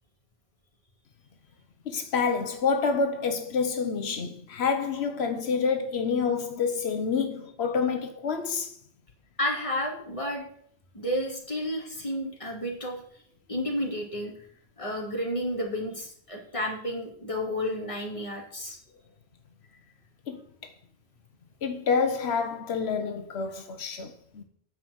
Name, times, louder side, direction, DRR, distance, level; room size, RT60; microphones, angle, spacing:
voice 1, 1.9-8.7 20.3-20.7 21.6-24.4, left 5 dB, 85° left, 1.1 m, -28 dB
voice 2, 9.4-10.4 10.9-13.0 13.5-14.3 14.8-18.8, equal, 30° left, 2.6 m, -31 dB
9.2 x 5.9 x 7.8 m
omnidirectional pair, 1.1 m